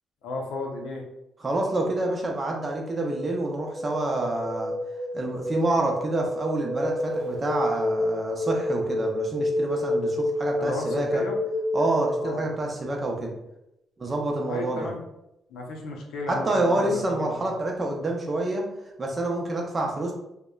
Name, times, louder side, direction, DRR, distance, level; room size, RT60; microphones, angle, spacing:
voice 1, 0.2-1.0 10.6-11.4 12.2-12.4 14.5-15.0 15.5-17.5, left 2 dB, 85° left, 0 dB, 0.5 m, -34 dB
voice 2, 1.4-4.7 5.1-11.2 11.7-13.3 14.0-14.9 16.3-18.7 19.0-20.1, right 2 dB, 30° right, 0 dB, 0.6 m, -27 dB
sound 1, 2.6-12.5, left 1 dB, 90° right, 0.5 m, -29 dB
2.8 x 2.1 x 2.2 m, 0.85 s
cardioid pair, 90°, 0 cm